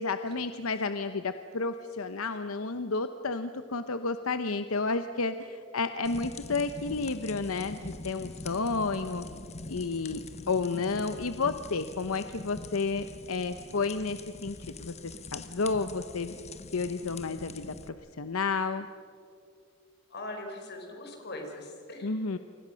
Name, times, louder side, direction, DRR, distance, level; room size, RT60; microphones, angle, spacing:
voice 1, 0.0-9.3 9.7-10.2 10.5-16.3 16.7-18.9 22.0-22.4, left 4 dB, 80° left, 10 dB, 0.9 m, -31 dB
sound 1, 6.0-17.9, left 3 dB, 30° left, 1.1 m, -44 dB
voice 2, 8.8-9.5 20.1-22.1, left 1 dB, 55° left, 3 dB, 4.8 m, -42 dB
29.5 x 24.5 x 6.4 m, 2.5 s
head